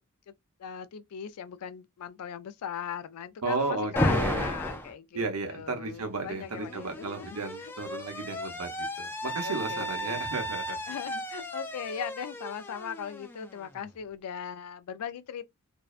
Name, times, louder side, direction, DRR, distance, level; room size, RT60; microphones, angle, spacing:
voice 1, 0.6-7.7 9.4-10.2 10.9-15.4, left 8 dB, 90° left, 0.4 m, -39 dB
voice 2, 3.4-4.6 5.1-10.8, right 3 dB, 85° right, 0.8 m, -34 dB
Alarm, 4.0-4.9 6.1-13.8, left 1 dB, 10° left, 0.3 m, -34 dB
2.6 x 2.1 x 2.4 m
head